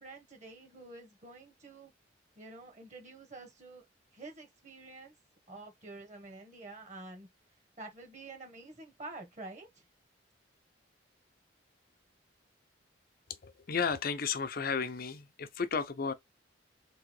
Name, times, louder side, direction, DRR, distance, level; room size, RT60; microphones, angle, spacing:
voice 1, 0.0-1.9 2.4-3.8 4.1-5.1 5.5-7.3 7.8-9.7, right 2 dB, 40° right, 1.5 m, -48 dB
voice 2, 13.4-16.1, left 5 dB, 50° left, 0.6 m, -33 dB
3.7 x 3.0 x 4.6 m
head